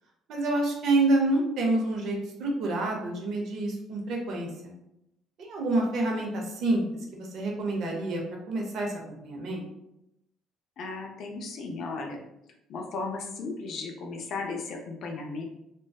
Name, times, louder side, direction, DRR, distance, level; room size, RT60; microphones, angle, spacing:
voice 1, 0.3-4.7 5.4-6.8 7.1-8.2 8.5-9.6, right 2 dB, 55° right, 0 dB, 0.6 m, -28 dB
voice 2, 10.8-12.2 12.7-15.4, left 3 dB, 50° left, 2 dB, 0.4 m, -35 dB
2.6 x 2.2 x 2.2 m, 0.84 s
cardioid pair, 150°, 0 cm